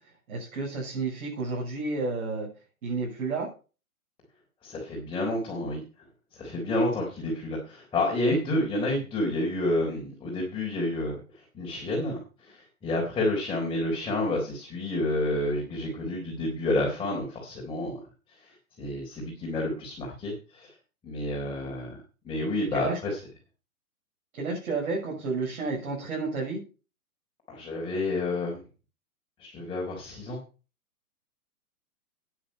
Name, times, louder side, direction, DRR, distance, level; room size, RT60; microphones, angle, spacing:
voice 1, 0.3-2.5 2.8-3.5 22.7-23.0 24.3-26.6, right 3 dB, 60° right, -4 dB, 7.1 m, -31 dB
voice 2, 4.6-5.8 6.3-18.0 18.3-20.7 21.0-22.0 22.2-23.2 27.5-28.6 29.4-30.4, left 1 dB, 10° left, -2 dB, 3.9 m, -29 dB
10.0 x 9.9 x 5.6 m, 0.35 s
hypercardioid pair, 135°, 44 cm